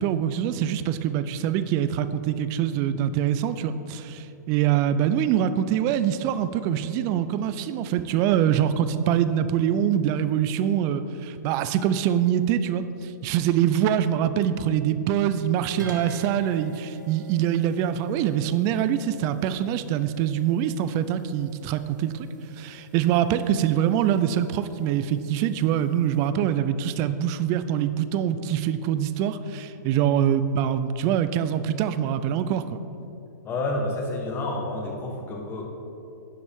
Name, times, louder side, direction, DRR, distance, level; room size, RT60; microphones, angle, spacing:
voice 1, 0.0-22.3 22.6-32.8, right 10 dB, 30° right, 12 dB, 0.4 m, -24 dB
sound 1, 15.8-26.3, right 4 dB, 75° right, 1.0 m, -44 dB
voice 2, 33.4-35.6, left 2 dB, 20° left, 1 dB, 1.3 m, -29 dB
11.0 x 7.1 x 3.6 m, 2.8 s
hypercardioid pair, 135°, 10 cm